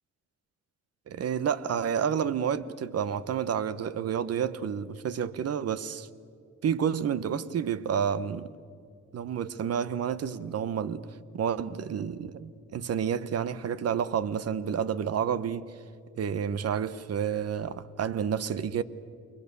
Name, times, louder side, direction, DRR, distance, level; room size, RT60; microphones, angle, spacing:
voice 1, 1.1-6.1 6.6-8.5 9.1-11.1 11.3-15.7 16.2-18.8, right 8 dB, 55° right, 1.1 m, -30 dB
29.5 x 22.0 x 6.9 m
cardioid pair, 90°, 30 cm